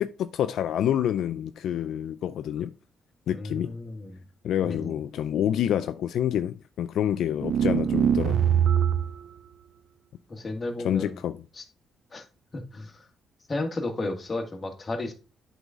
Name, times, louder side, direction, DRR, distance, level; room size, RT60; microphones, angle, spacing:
voice 1, 0.0-2.7 3.3-3.7 4.4-8.4 10.8-11.5, left 10 dB, 75° left, 0.3 m, -27 dB
voice 2, 3.3-4.2 4.6-4.9 7.7-8.0 10.3-11.2 11.5-11.6 12.1-12.2 12.5-13.1 13.5-15.1, left 2 dB, 30° left, 1.5 m, -33 dB
sound 1, 7.4-9.2, right 9 dB, 70° right, 0.4 m, -22 dB
7.9 x 4.0 x 3.6 m
cardioid pair, 90°, 0 cm